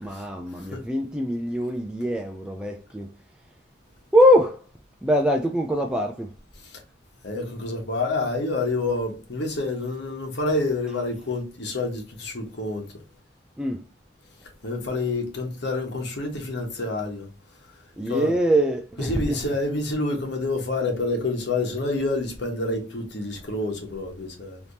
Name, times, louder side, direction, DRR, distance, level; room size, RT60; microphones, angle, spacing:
voice 1, 0.0-3.1 4.1-4.6 5.0-6.3 13.6-13.8 18.0-19.4, equal, 5° right, 0.3 m, -23 dB
voice 2, 7.2-12.9 14.6-17.3 18.1-18.3 19.0-24.6, left 2 dB, 70° left, 1.3 m, -28 dB
3.4 x 2.9 x 2.7 m
head